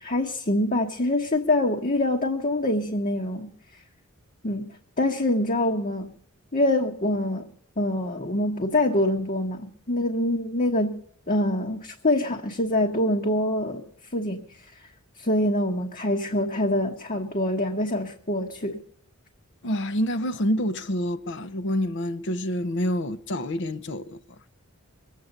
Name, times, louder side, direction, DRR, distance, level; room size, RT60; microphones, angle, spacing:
voice 1, 0.0-3.5 4.4-6.1 6.5-7.5 7.8-11.0 11.3-13.8 14.1-14.4 15.2-18.8, left 1 dB, 40° left, 1.2 m, -25 dB
voice 2, 19.6-24.2, equal, 60° left, 0.8 m, -27 dB
22.0 x 8.5 x 6.6 m
head